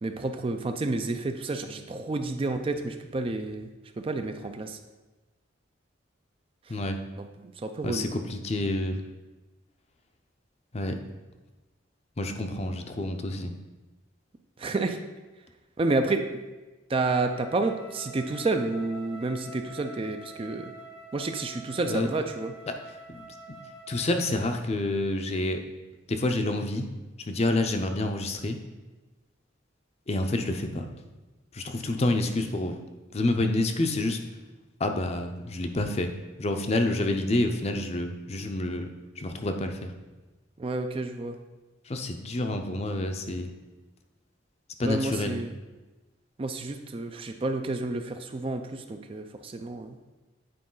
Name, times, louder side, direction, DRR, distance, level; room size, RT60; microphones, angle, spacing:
voice 1, 0.0-3.7 4.0-4.8 6.7-6.8 7.2-8.1 14.6-15.0 15.8-16.4 16.9-20.7 21.1-22.5 40.6-41.4 44.8-45.6 46.4-50.0, right 3 dB, 30° right, 7 dB, 0.4 m, -30 dB
voice 2, 7.8-9.0 10.7-11.0 12.2-13.5 21.8-22.1 22.7-22.8 23.1-23.6 23.9-25.6 26.1-26.9 27.3-28.6 30.1-30.9 31.5-32.8 33.1-34.2 34.8-36.1 36.4-38.9 39.2-39.9 41.9-43.5 44.8-45.4, left 2 dB, 35° left, 6 dB, 0.5 m, -28 dB
Wind instrument woodwind instrument, 17.0-24.6, right 1 dB, 90° left, 1.3 m, -46 dB
8.5 x 4.7 x 3.9 m, 1.2 s
head